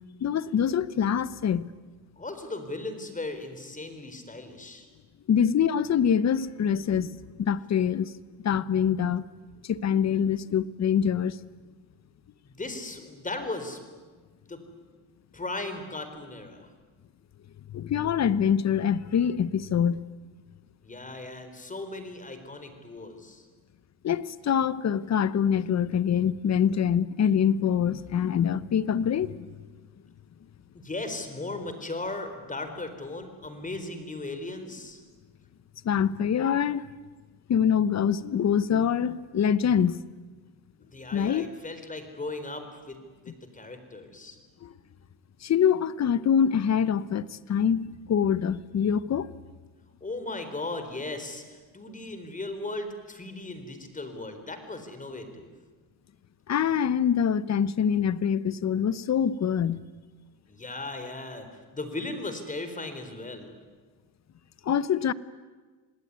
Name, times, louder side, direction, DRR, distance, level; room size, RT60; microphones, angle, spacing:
voice 1, 0.2-1.7 5.3-8.1 8.4-9.2 9.6-11.4 17.7-20.0 24.0-29.5 35.8-36.8 37.5-40.0 41.1-41.6 44.6-44.7 45.4-49.3 56.5-59.8 64.6-65.1, left 8 dB, 35° left, 1.0 m, -25 dB
voice 2, 2.2-4.9 12.4-13.8 14.5-14.6 15.3-16.7 20.8-23.4 30.8-35.0 40.9-43.0 43.2-44.4 50.0-55.5 60.5-61.5 61.7-63.6, left 2 dB, 15° left, 4.2 m, -37 dB
27.0 x 19.0 x 9.6 m
cardioid pair, 110°, 44 cm